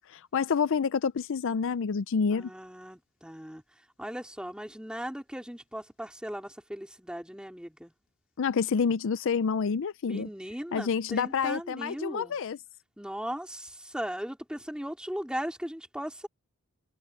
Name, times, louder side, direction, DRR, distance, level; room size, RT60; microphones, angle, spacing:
voice 1, 0.1-2.5 8.4-10.3 10.7-12.6, left 6 dB, 60° left, 0.5 m, -28 dB
voice 2, 2.3-3.6 4.0-7.9 10.1-12.4 13.0-16.3, equal, 5° right, 3.5 m, -38 dB
head